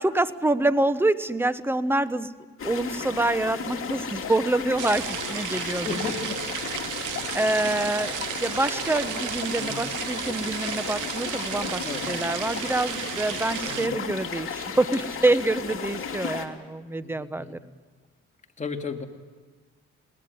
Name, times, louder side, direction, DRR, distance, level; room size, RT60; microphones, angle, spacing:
voice 1, 0.0-2.3 2.6-6.1 7.3-17.6, right 2 dB, 5° right, 13 dB, 1.1 m, -26 dB
sound 1, 2.6-16.4, left 6 dB, 45° left, 3.0 m, -34 dB
sound 2, 4.8-13.9, right 12 dB, 80° right, 1.1 m, -34 dB
voice 2, 5.6-6.8 7.1-7.2 9.6-9.8 11.8-12.1 12.5-12.7 13.7-14.0 17.0-17.6 18.6-19.0, left 5 dB, 25° left, 2 dB, 2.6 m, -35 dB
21.0 x 19.5 x 9.4 m, 1.4 s
cardioid pair, 90°, 30 cm